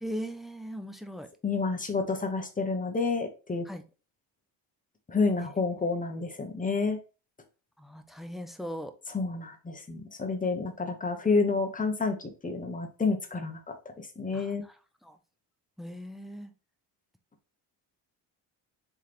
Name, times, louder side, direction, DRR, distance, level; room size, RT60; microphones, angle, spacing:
voice 1, 0.0-1.3 3.7-3.8 7.8-8.9 14.3-14.5 15.0-15.2 15.8-16.5, equal, ahead, 8 dB, 0.5 m, -39 dB
voice 2, 1.4-3.6 5.1-7.0 9.1-14.6, left 4 dB, 15° left, 5 dB, 1.0 m, -29 dB
3.6 x 3.4 x 2.9 m, 0.34 s
supercardioid pair, 65°, 47 cm